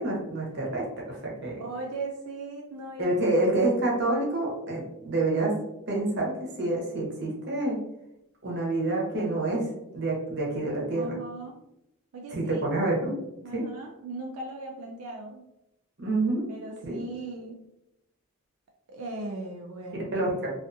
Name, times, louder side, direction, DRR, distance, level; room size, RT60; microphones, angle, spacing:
voice 1, 0.0-1.6 3.0-5.5 5.9-7.8 8.4-9.7 9.9-11.1 12.3-13.2 13.5-13.6 16.0-16.5 16.8-17.0 20.1-20.5, right 2 dB, 50° right, -3 dB, 0.7 m, -27 dB
voice 2, 1.6-3.1 10.9-11.6 12.1-12.6 13.4-15.5 16.5-17.6 18.9-20.1, right 2 dB, 85° right, 0 dB, 0.4 m, -38 dB
2.4 x 2.4 x 2.5 m, 0.87 s
head